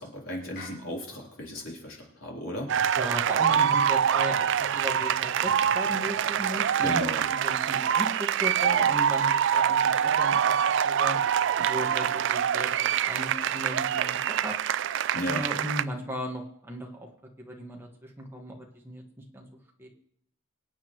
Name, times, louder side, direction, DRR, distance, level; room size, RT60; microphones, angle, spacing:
voice 1, 0.0-2.7 6.8-7.2 15.1-15.4, left 1 dB, 80° left, -2 dB, 3.7 m, -35 dB
sound 1, 0.5-0.8 3.5-3.8 6.5-6.8 9.5-9.8, left 4 dB, 55° left, 5.4 m, -45 dB
sound 2, 2.7-15.8, right 8 dB, 65° right, 0.4 m, -25 dB
voice 2, 2.9-10.5 10.8-11.2 11.6-14.6 15.3-17.1 17.4-19.0 19.3-19.4 19.8-19.9, equal, 10° right, 0 dB, 1.6 m, -36 dB
24.0 x 8.6 x 3.1 m, 0.71 s
head